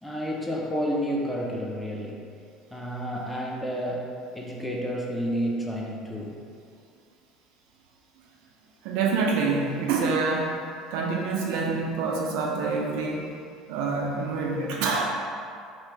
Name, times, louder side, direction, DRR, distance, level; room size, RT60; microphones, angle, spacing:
voice 1, 0.0-2.3 2.7-6.4, equal, 5° left, -3 dB, 0.6 m, -30 dB
voice 2, 8.8-10.6 10.9-13.3 13.7-15.1, right 4 dB, 60° right, -1 dB, 0.4 m, -26 dB
4.3 x 2.5 x 2.9 m, 2.4 s
figure-of-eight pair, 65°, 0 cm